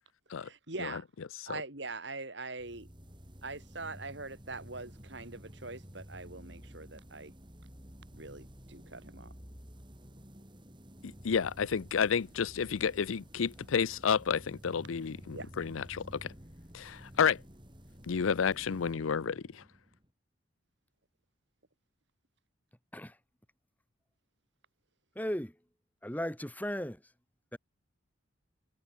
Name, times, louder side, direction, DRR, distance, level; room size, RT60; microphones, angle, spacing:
voice 1, 0.4-1.1 1.5-2.9 3.4-7.3 8.1-9.3 15.3-15.5, right 3 dB, 60° right, 3.5 m, -43 dB
sound 1, 2.6-20.1, equal, 25° right, 6.4 m, -52 dB
voice 2, 11.0-16.3 16.7-17.4 18.1-19.6, left 6 dB, 90° left, 0.5 m, -31 dB
voice 3, 25.1-25.6 26.0-27.1 27.5-27.6, equal, 10° left, 2.1 m, -36 dB
head